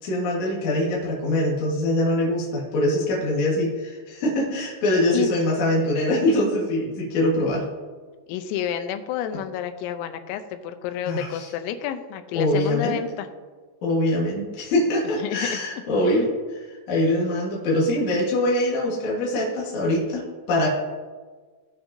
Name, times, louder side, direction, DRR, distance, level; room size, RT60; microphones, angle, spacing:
voice 1, 0.0-7.6 11.1-11.5 12.3-13.0 13.8-20.7, left 1 dB, 65° left, -5 dB, 1.9 m, -23 dB
voice 2, 8.3-13.3 15.2-15.6 16.1-16.2, left 10 dB, 85° left, 8 dB, 3.3 m, -30 dB
18.0 x 6.1 x 2.7 m, 1.4 s
omnidirectional pair, 6.0 m